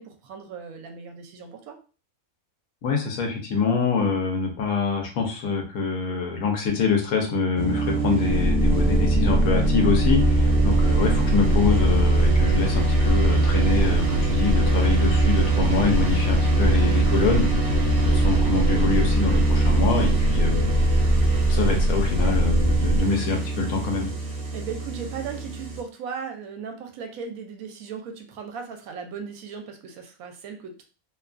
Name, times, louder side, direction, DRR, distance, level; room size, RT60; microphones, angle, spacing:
voice 1, 0.0-1.8 10.4-10.8 18.3-18.4 22.1-22.4 24.5-30.8, right 6 dB, 75° right, 5 dB, 1.0 m, -37 dB
voice 2, 2.8-17.4 18.0-20.7 21.5-24.1, left 4 dB, 80° left, 2 dB, 1.1 m, -25 dB
sound 1, 7.5-25.8, right 3 dB, 35° right, 0.6 m, -24 dB
sound 2, 8.3-23.0, equal, 55° left, 0.5 m, -23 dB
2.8 x 2.2 x 2.4 m, 0.36 s
omnidirectional pair, 1.5 m